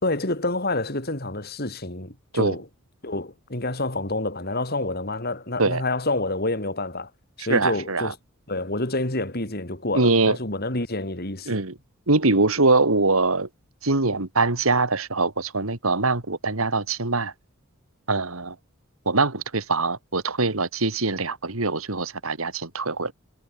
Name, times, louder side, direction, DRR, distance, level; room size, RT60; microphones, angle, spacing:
voice 1, 0.0-2.7 3.0-7.1 7.4-8.2 8.5-11.6, left 2 dB, 50° left, 4.3 m, -28 dB
voice 2, 7.5-8.1 9.9-10.4 11.5-11.7 12.1-13.5 13.8-17.3 18.1-18.5 19.1-23.1, right 3 dB, 85° right, 2.6 m, -23 dB
head